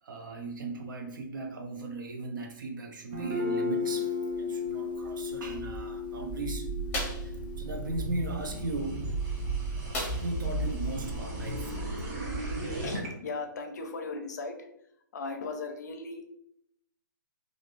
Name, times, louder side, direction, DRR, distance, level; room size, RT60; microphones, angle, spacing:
voice 1, 0.0-6.7 7.0-9.1 10.1-11.9, right 3 dB, 65° right, 2 dB, 0.7 m, -38 dB
Guitar, 3.1-10.8, left 4 dB, 25° right, 0.4 m, -36 dB
sound 1, 5.0-13.1, right 2 dB, 50° right, 1.2 m, -35 dB
sound 2, 6.9-7.3 9.9-10.5 10.9-11.0 11.4-11.5, left 2 dB, 10° left, 0.7 m, -35 dB
voice 2, 12.8-14.7 15.1-16.3, left 3 dB, 55° left, 5 dB, 0.5 m, -37 dB
3.3 x 2.6 x 2.5 m, 0.76 s
hypercardioid pair, 170°, 11 cm